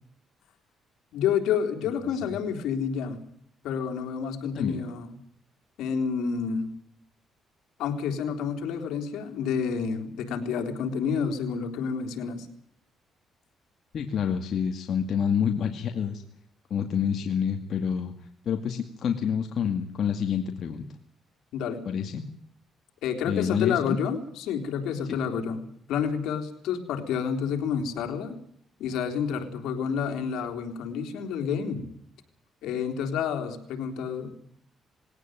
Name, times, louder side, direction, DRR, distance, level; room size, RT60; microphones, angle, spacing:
voice 1, 1.1-3.2 3.6-5.1 5.8-6.7 7.8-12.5 21.5-21.8 23.0-28.4 28.8-31.8 32.6-34.3, left 7 dB, 85° left, 4 dB, 3.7 m, -29 dB
voice 2, 13.9-16.2 16.7-18.1 18.5-20.8 21.9-22.2 23.3-24.0 25.1-25.2, left 7 dB, 60° left, 5 dB, 2.2 m, -28 dB
20.0 x 18.0 x 9.2 m, 0.68 s
cardioid pair, 90°, 0 cm